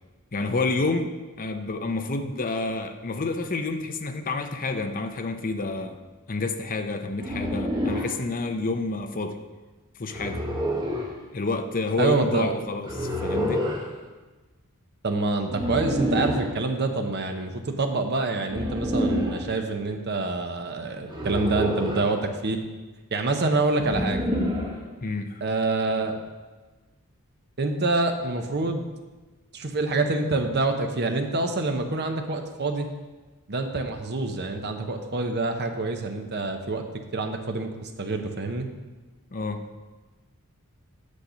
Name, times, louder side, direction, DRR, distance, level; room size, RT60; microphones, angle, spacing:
voice 1, 0.3-6.0 6.3-9.4 10.0-10.4 11.3-13.6 25.0-25.4 39.3-39.6, left 3 dB, 40° left, 6 dB, 0.7 m, -29 dB
sound 1, 7.2-8.2 10.1-11.1 12.8-13.8 15.5-16.5 18.5-19.5 21.1-22.1 23.8-24.8, equal, 20° right, 1.2 m, -27 dB
voice 2, 12.0-12.5 15.0-22.6 23.1-24.3 25.4-26.2 27.6-28.9 29.5-32.9 33.5-36.9 37.1-38.7, right 3 dB, 50° right, 5 dB, 0.9 m, -26 dB
8.6 x 6.7 x 5.1 m, 1.3 s
head